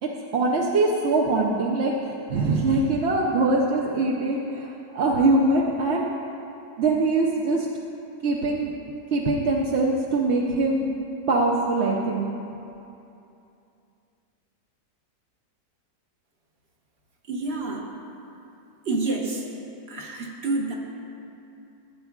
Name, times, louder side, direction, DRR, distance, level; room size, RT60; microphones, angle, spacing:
voice 1, 0.0-1.9 2.3-4.7 4.9-6.1 6.8-7.7 8.2-8.7 9.1-10.9 11.3-12.3, right 2 dB, 60° right, -2 dB, 0.7 m, -22 dB
voice 2, 17.3-17.9 18.8-19.5 19.9-20.8, right 3 dB, 45° right, 0 dB, 1.1 m, -28 dB
15.0 x 8.1 x 2.4 m, 2.8 s
omnidirectional pair, 1.7 m